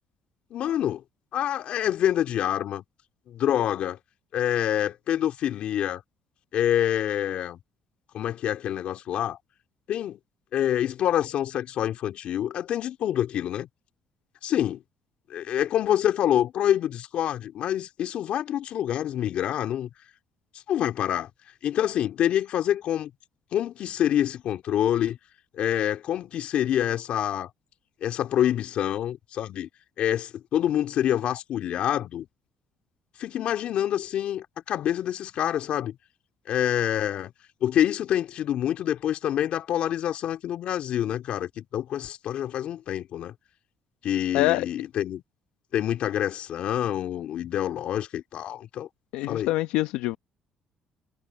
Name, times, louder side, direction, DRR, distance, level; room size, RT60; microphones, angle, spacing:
voice 1, 0.5-1.0 1.3-2.8 3.3-4.0 4.3-6.0 6.5-7.6 8.1-9.4 9.9-10.2 10.5-13.7 14.4-14.8 15.3-19.9 20.7-21.3 21.6-23.1 23.5-25.2 25.5-27.5 28.0-29.7 30.0-32.3 33.2-36.0 36.5-37.3 37.6-43.3 44.0-45.2 45.7-48.9 49.3-49.5, left 11 dB, 65° left, 2.8 m, -26 dB
voice 2, 44.3-44.7 49.1-50.2, left 18 dB, 85° left, 0.9 m, -25 dB
supercardioid pair, 65°, 2 cm